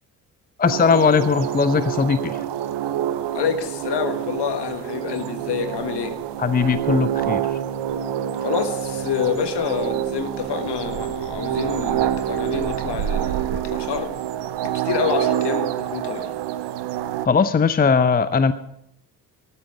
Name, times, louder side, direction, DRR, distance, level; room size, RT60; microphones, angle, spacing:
voice 1, 0.6-2.4 6.4-7.6 17.2-18.5, left 5 dB, 20° left, 13 dB, 0.7 m, -19 dB
sound 1, 0.6-17.3, right 11 dB, 55° right, 0.9 m, -27 dB
voice 2, 3.3-6.2 8.4-14.2 14.6-16.4, left 8 dB, 55° left, 8 dB, 1.6 m, -27 dB
14.0 x 13.0 x 4.9 m, 0.74 s
figure-of-eight pair, 40°, 49 cm